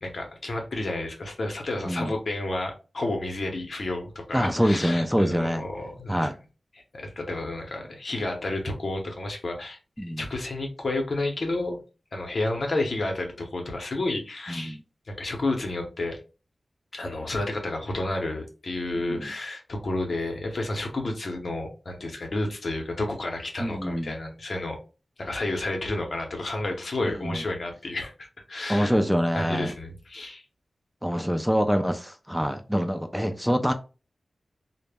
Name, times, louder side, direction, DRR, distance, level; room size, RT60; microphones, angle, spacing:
voice 1, 0.0-6.3 6.9-9.8 10.1-11.8 12.1-14.8 15.1-16.2 16.9-24.8 25.2-29.0 29.3-30.4, left 2 dB, 65° left, 0.7 m, -31 dB
voice 2, 4.3-5.6 6.1-6.3 10.0-10.2 14.6-14.8 19.0-19.3 23.6-24.1 27.2-27.4 28.7-29.7 31.0-33.7, equal, 5° right, 0.3 m, -25 dB
2.1 x 2.0 x 3.3 m
cardioid pair, 55°, 0 cm